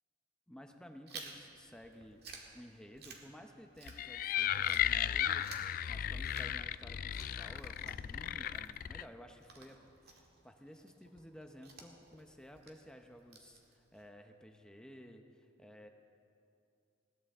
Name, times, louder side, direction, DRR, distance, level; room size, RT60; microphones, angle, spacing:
voice 1, 0.5-2.2 2.5-15.9, equal, 5° left, 4 dB, 0.8 m, -54 dB
Chewing mastication, 1.1-4.3 4.6-14.1, right 4 dB, 60° right, 1.9 m, -55 dB
sound 1, 3.9-9.0, left 10 dB, 50° left, 0.3 m, -35 dB
20.5 x 18.0 x 3.6 m, 2.6 s
head